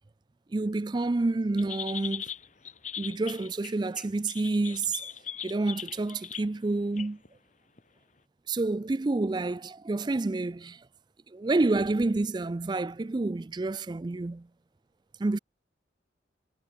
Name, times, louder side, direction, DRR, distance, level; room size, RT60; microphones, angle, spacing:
voice 1, 0.5-2.3 3.0-5.0 5.4-7.2 8.5-10.8 11.3-14.5 15.2-15.4, right 2 dB, 25° right, 0.3 m, -28 dB
sound 1, 1.6-6.5 7.0-7.3 7.8-7.9, left 9 dB, 40° left, 0.9 m, -39 dB
head